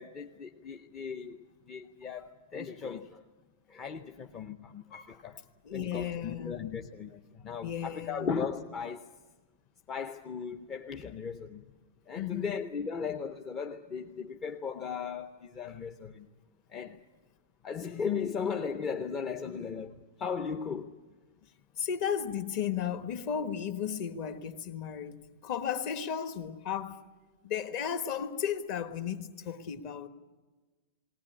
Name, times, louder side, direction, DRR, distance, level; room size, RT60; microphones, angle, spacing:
voice 1, 0.0-3.2 3.7-5.4 5.7-9.0 9.9-11.7 12.1-16.3 16.7-17.0 17.6-20.9, left 6 dB, 20° left, 0.6 m, -37 dB
voice 2, 5.6-6.6 7.6-8.4 12.1-12.5 19.5-19.7 21.8-27.0 27.4-30.1, left 8 dB, 40° left, 1.3 m, -34 dB
19.0 x 19.0 x 9.9 m
supercardioid pair, 170°, 0 cm